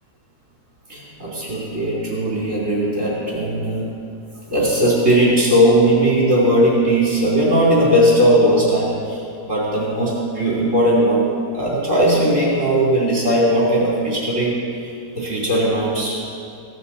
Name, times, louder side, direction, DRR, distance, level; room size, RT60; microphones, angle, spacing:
voice 1, 0.9-3.8 4.5-11.2 11.5-14.5 14.8-16.2, equal, 20° right, -6 dB, 3.0 m, -18 dB
17.0 x 14.0 x 4.2 m, 2.4 s
omnidirectional pair, 5.3 m